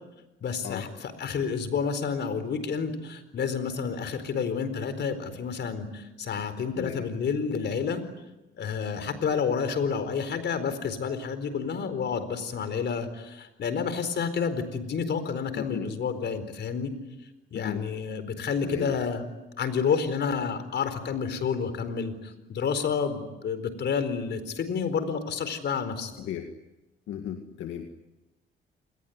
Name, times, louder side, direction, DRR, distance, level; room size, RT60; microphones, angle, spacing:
voice 1, 0.4-8.0 8.6-16.9 17.5-19.3 19.6-26.1, left 6 dB, 60° left, 11 dB, 4.4 m, -29 dB
voice 2, 15.6-15.9 17.5-17.8 18.6-18.9 26.2-26.5 27.1-27.9, left 9 dB, 80° left, 5 dB, 2.1 m, -35 dB
28.5 x 21.0 x 9.5 m, 0.99 s
cardioid pair, 90°, 20 cm